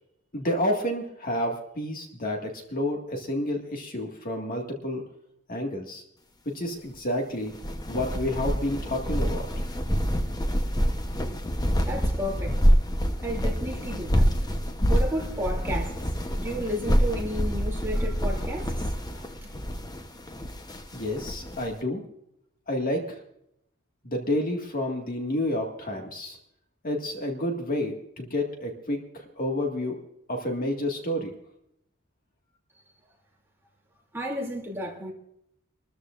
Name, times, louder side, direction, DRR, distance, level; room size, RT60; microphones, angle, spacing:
voice 1, 0.3-5.0 5.5-6.0 6.5-7.5 7.9-9.5 20.9-22.0 22.7-23.2 24.0-26.4 26.8-30.0 30.3-31.3, left 1 dB, 45° left, 1.9 m, -29 dB
sound 1, 7.5-21.7, equal, 20° left, 0.9 m, -26 dB
voice 2, 11.8-12.6 13.2-14.3 14.9-19.5 34.1-35.1, equal, 10° right, 2.8 m, -33 dB
26.5 x 13.5 x 2.5 m
head